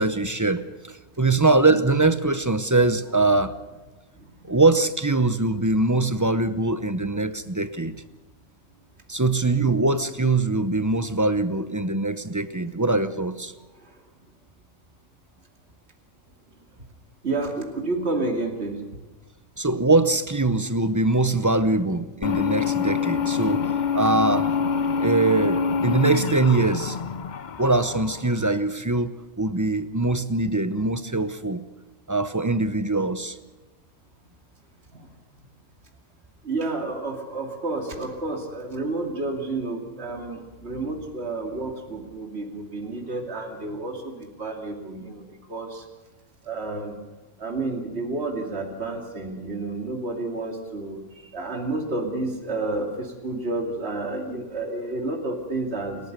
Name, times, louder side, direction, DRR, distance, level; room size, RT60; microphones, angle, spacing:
voice 1, 0.0-3.6 4.4-7.9 9.1-13.5 19.6-24.5 25.0-27.0 27.6-29.1 29.4-31.6 32.1-33.4, right 2 dB, 20° right, 12 dB, 0.6 m, -22 dB
voice 2, 17.2-18.8 34.9-35.0 36.4-45.8 46.4-47.0 47.4-51.0 51.3-56.1, right 2 dB, 50° right, 3 dB, 2.9 m, -30 dB
sound 1, 22.2-28.6, left 6 dB, 40° left, 0.7 m, -26 dB
29.0 x 13.5 x 6.7 m, 1.2 s
omnidirectional pair, 1.5 m